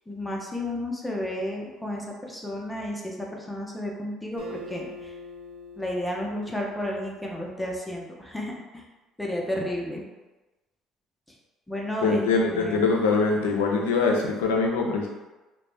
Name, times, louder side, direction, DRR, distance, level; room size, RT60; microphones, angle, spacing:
voice 1, 0.1-5.2 5.8-8.8 9.2-10.1 11.3-11.4 11.7-12.9, left 1 dB, 10° left, -1 dB, 0.6 m, -32 dB
Acoustic guitar, 4.4-7.8, left 1 dB, 70° right, 0.6 m, -44 dB
voice 2, 12.0-15.1, left 4 dB, 90° left, 1 dB, 0.4 m, -23 dB
2.4 x 2.1 x 3.2 m, 1.1 s
hypercardioid pair, 70°, 0 cm